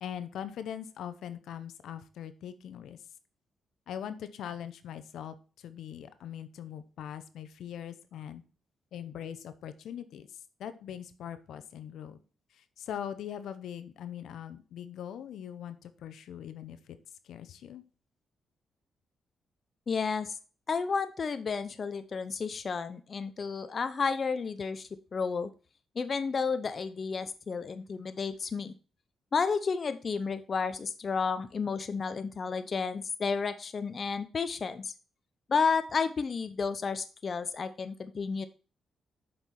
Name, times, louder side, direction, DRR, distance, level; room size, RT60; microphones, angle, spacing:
voice 1, 0.0-3.0 3.9-8.4 8.9-12.2 12.5-17.0 17.2-17.8, left 9 dB, 80° left, 12 dB, 0.8 m, -41 dB
voice 2, 19.9-20.4 20.7-25.5 26.0-28.7 29.3-34.9 35.5-38.5, left 5 dB, 45° left, 11 dB, 0.7 m, -31 dB
7.8 x 5.6 x 4.3 m, 0.36 s
cardioid pair, 85°, 0 cm